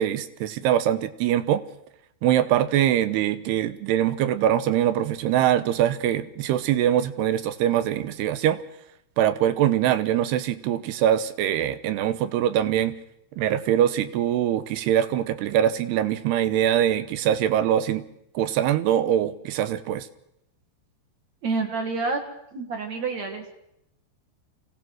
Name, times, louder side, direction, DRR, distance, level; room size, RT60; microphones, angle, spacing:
voice 1, 0.0-1.6 2.2-8.6 9.2-13.0 13.4-18.0 18.4-20.1, right 11 dB, 80° right, 14 dB, 3.0 m, -23 dB
voice 2, 21.4-22.2 22.5-23.5, right 4 dB, 55° right, 3 dB, 2.4 m, -28 dB
25.0 x 17.0 x 6.3 m, 0.79 s
omnidirectional pair, 4.8 m